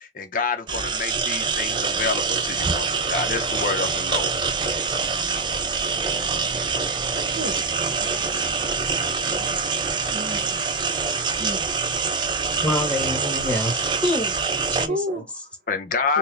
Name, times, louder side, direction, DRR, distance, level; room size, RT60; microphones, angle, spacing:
voice 1, 0.0-4.3 15.7-16.2, left 4 dB, 50° left, 0.6 m, -27 dB
sound 1, 0.7-14.9, right 5 dB, 25° right, 0.3 m, -25 dB
sound 2, 1.4-11.9, equal, 45° right, 1.3 m, -46 dB
voice 2, 7.2-7.7 8.0-8.3 10.1-10.9 11.4-11.7 14.9-15.5 16.1-16.2, equal, 65° right, 1.0 m, -32 dB
voice 3, 12.6-14.3 14.7-15.2, left 1 dB, 5° left, 1.0 m, -26 dB
3.9 x 2.1 x 3.1 m
head